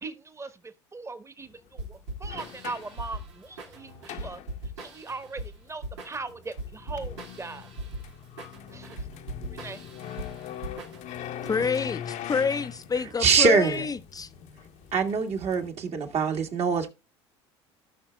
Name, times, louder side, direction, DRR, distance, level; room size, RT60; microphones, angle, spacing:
voice 1, 0.0-4.4 4.8-7.7 8.7-9.0 9.5-9.8, right 3 dB, 20° right, 1.3 m, -40 dB
sound 1, 1.5-1.6 2.1-5.0 6.3-15.7, left 10 dB, 55° left, 1.0 m, -42 dB
sound 2, 1.8-11.3, right 1 dB, 85° right, 1.9 m, -40 dB
voice 2, 11.4-14.3, left 5 dB, 25° left, 0.7 m, -28 dB
voice 3, 13.2-13.8 14.9-16.9, right 5 dB, 45° right, 1.9 m, -23 dB
17.5 x 5.8 x 2.2 m
hypercardioid pair, 70°, 15 cm